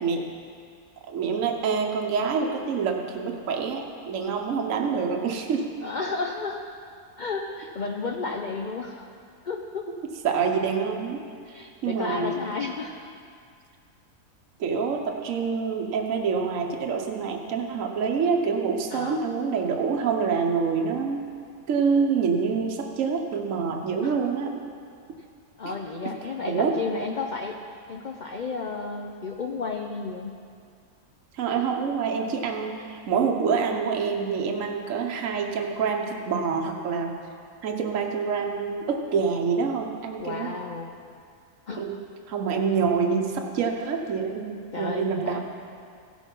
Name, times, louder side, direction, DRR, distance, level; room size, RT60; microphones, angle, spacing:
voice 1, 1.1-5.6 10.2-11.2 11.8-12.4 14.6-21.3 21.7-24.6 26.5-26.8 31.3-37.1 37.6-40.5 41.8-42.0 42.3-45.4, right 5 dB, 65° right, 2 dB, 1.2 m, -26 dB
voice 2, 5.8-6.6 7.2-9.1 9.4-9.9 11.4-12.9 18.9-19.2 24.0-24.2 25.6-27.6 27.9-30.4 40.2-40.9 41.7-42.0 44.7-45.4, left 4 dB, 55° left, 2 dB, 0.5 m, -32 dB
16.0 x 6.2 x 5.4 m, 2.3 s
omnidirectional pair, 1.6 m